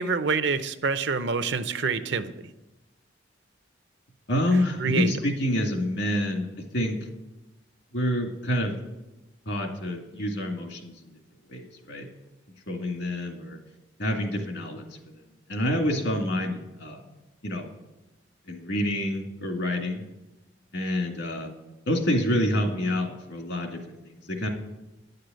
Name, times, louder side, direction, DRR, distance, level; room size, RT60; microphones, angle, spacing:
voice 1, 0.0-2.3 4.5-5.1, right 5 dB, 65° right, 11 dB, 0.7 m, -27 dB
voice 2, 4.3-7.1 7.9-8.7 9.5-10.9 11.5-12.1 12.7-13.6 14.0-14.9 15.5-17.0 17.4-17.7 18.5-20.0 20.7-21.5 21.9-24.5, left 1 dB, 70° left, 2 dB, 2.2 m, -27 dB
10.5 x 6.7 x 9.0 m, 1.0 s
head